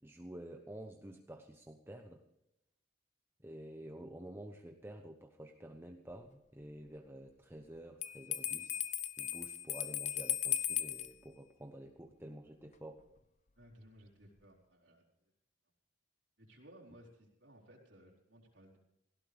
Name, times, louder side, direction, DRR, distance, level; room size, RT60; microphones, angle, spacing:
voice 1, 0.0-2.2 3.4-8.8 9.2-13.0, right 1 dB, 15° right, 4 dB, 1.0 m, -50 dB
Bell, 8.0-11.1, left 11 dB, 40° left, 0.8 m, -37 dB
voice 2, 13.6-15.0 16.4-18.8, equal, 80° right, -2 dB, 4.1 m, -59 dB
18.0 x 16.0 x 3.5 m, 0.85 s
head